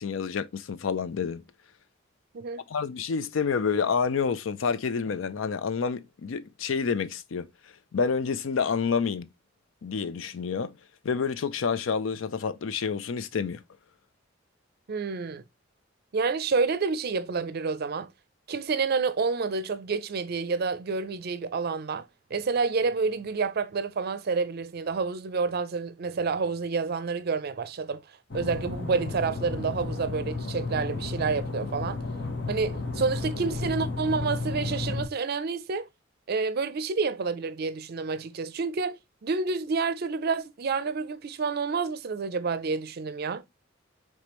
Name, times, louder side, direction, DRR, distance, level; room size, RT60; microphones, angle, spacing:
voice 1, 0.0-1.4 2.7-7.5 7.9-9.3 9.8-10.7 11.0-13.6, left 5 dB, 80° left, 0.5 m, -28 dB
voice 2, 14.9-15.4 16.1-18.1 18.5-22.0 22.3-28.0 28.3-32.0 32.5-35.9 36.3-39.0 39.2-43.4, right 4 dB, 55° right, 0.5 m, -29 dB
sound 1, 28.3-35.1, left 3 dB, 65° left, 1.1 m, -33 dB
5.1 x 3.2 x 3.0 m
head